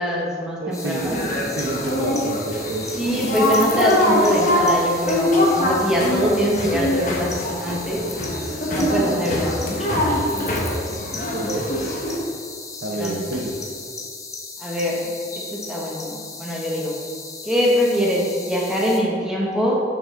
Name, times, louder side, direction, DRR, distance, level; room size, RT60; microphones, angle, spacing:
voice 1, 0.0-1.3 3.0-8.1 8.7-10.1 13.0-13.2 14.6-15.1 15.4-16.9 17.4-19.7, equal, 5° right, -4 dB, 0.9 m, -23 dB
voice 2, 0.6-3.3 10.9-12.0 12.8-13.6, right 2 dB, 85° right, -2 dB, 0.8 m, -29 dB
sound 1, 0.7-19.0, left 4 dB, 20° left, 0.5 m, -36 dB
sound 2, 0.9-12.2, left 1 dB, 45° left, 1.1 m, -23 dB
sound 3, 4.5-5.0 5.5-5.6 6.6-6.7 7.5-8.2 9.0-9.7 10.4-10.8 12.3-12.5 13.3-13.9 15.5-15.8, equal, 70° right, 1.5 m, -38 dB
6.3 x 6.2 x 3.7 m, 2.2 s
head